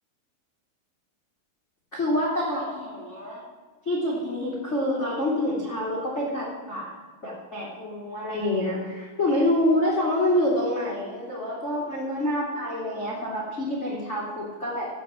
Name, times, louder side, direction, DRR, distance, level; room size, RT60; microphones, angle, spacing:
voice 1, 1.9-3.4 3.8-6.9 7.2-14.9, left 1 dB, 50° left, -3 dB, 0.8 m, -27 dB
15.0 x 5.5 x 7.8 m, 1.4 s
omnidirectional pair, 5.8 m